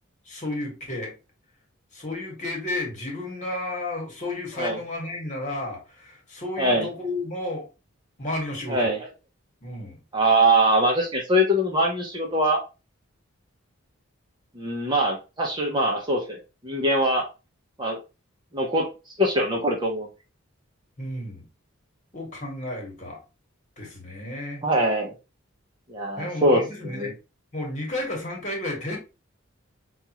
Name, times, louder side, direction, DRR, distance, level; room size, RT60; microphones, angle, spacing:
voice 1, 0.3-1.1 1.9-7.7 8.2-8.9 9.6-10.0 21.0-21.5 22.1-23.2 23.8-24.6 26.2-27.1 27.5-29.0, left 1 dB, 35° left, 1.4 m, -32 dB
voice 2, 6.6-6.9 8.7-9.0 10.1-12.6 14.6-16.4 16.6-17.3 17.8-18.0 18.5-18.9 19.2-20.1 24.6-25.1 25.9-27.1, right 1 dB, 20° right, 0.7 m, -22 dB
5.3 x 2.4 x 2.9 m
head